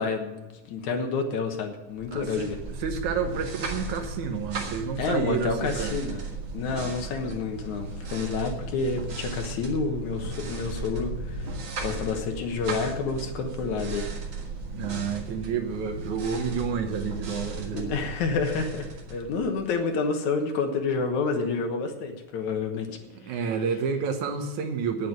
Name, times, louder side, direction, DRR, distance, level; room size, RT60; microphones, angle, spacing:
voice 1, 0.0-2.6 5.0-6.2 6.5-11.4 11.8-14.1 17.7-23.0, left 4 dB, 75° left, 5 dB, 2.6 m, -29 dB
sound 1, 1.9-19.8, right 2 dB, 45° right, 2.0 m, -36 dB
voice 2, 2.1-5.9 14.7-17.9 23.1-25.1, right 6 dB, 75° right, 6 dB, 2.5 m, -30 dB
9.3 x 8.6 x 9.1 m, 1.1 s
omnidirectional pair, 3.5 m